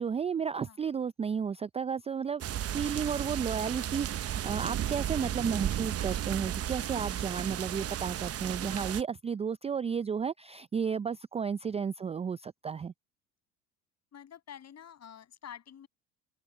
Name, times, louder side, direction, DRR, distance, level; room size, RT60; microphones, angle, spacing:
voice 1, 0.0-2.4 2.7-12.9, right 6 dB, 15° right, 0.4 m, -33 dB
sound 1, 2.4-9.0, right 11 dB, 35° right, 1.0 m, -34 dB
voice 2, 5.2-5.6 14.1-15.9, left 9 dB, 40° left, 7.4 m, -49 dB
open air
hypercardioid pair, 80°, 39 cm